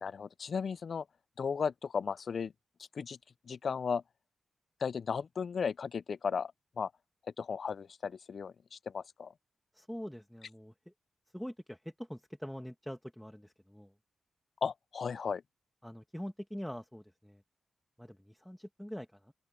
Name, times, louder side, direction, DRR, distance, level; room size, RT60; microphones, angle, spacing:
voice 1, 0.0-1.0 1.4-2.5 3.0-3.2 3.5-4.0 4.8-6.5 6.8-6.9 7.4-9.3 14.6-15.4, left 6 dB, 60° left, 0.5 m, -35 dB
voice 2, 9.7-10.7 11.3-13.9 15.8-17.4 18.0-19.3, equal, 5° left, 1.4 m, -44 dB
open air
cardioid pair, 85°, 0 cm